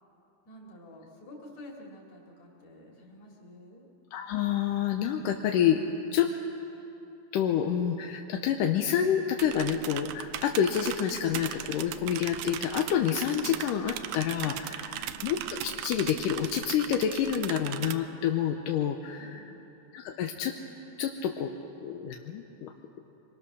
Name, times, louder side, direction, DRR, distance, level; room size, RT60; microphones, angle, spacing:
voice 1, 0.5-3.8 14.9-15.2 19.2-19.6, left 1 dB, 45° left, -2 dB, 3.9 m, -49 dB
voice 2, 4.1-5.8 6.1-6.3 7.3-19.4 19.9-20.5 21.0-21.5 21.8-22.7, left 9 dB, 75° left, 3 dB, 2.1 m, -28 dB
sound 1, 9.4-17.9, right 12 dB, 80° right, 2.4 m, -38 dB
25.5 x 22.5 x 6.3 m, 2.9 s
omnidirectional pair, 4.4 m